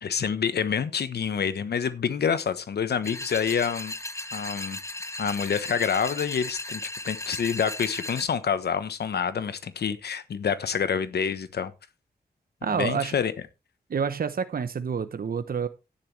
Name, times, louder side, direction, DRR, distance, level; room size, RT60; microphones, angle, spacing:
voice 1, 0.0-3.9 4.3-4.8 5.2-11.7 12.7-13.3, left 7 dB, 80° left, 1.2 m, -27 dB
sound 1, 3.0-8.2, left 2 dB, 20° left, 1.3 m, -36 dB
voice 2, 12.6-13.1 13.9-15.7, right 6 dB, 65° right, 1.0 m, -28 dB
11.5 x 10.5 x 3.4 m
cardioid pair, 65°, 17 cm